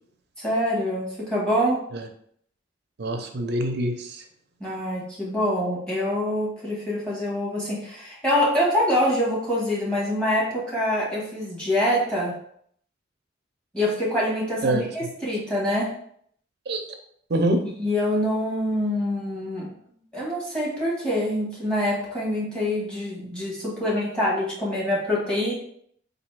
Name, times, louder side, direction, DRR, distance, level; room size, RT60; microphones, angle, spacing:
voice 1, 0.4-1.8 4.6-12.3 13.7-15.9 17.8-19.7 20.1-25.5, left 1 dB, 5° left, -7 dB, 1.5 m, -25 dB
voice 2, 3.0-4.2 14.6-14.8 16.7-16.8 17.3-17.6, right 1 dB, 55° right, 5 dB, 0.6 m, -25 dB
4.1 x 2.7 x 4.6 m, 0.66 s
head